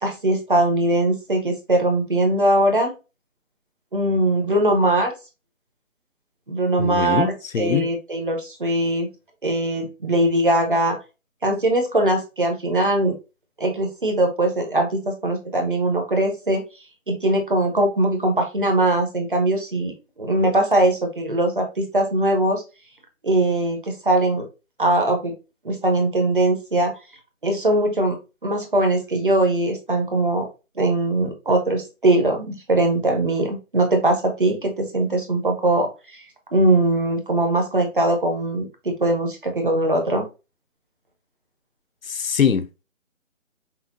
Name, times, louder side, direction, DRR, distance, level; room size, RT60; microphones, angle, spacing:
voice 1, 0.0-2.9 3.9-5.1 6.5-9.1 9.4-11.0 11.4-13.1 13.6-16.6 17.1-22.6 23.2-24.4 24.8-25.3 25.6-26.9 27.4-30.5 30.8-36.2 36.5-40.3, right 1 dB, 40° right, 0.9 m, -21 dB
voice 2, 6.8-7.9 42.1-42.8, left 7 dB, 80° left, 0.7 m, -23 dB
5.6 x 2.2 x 2.6 m
figure-of-eight pair, 175°, 40 cm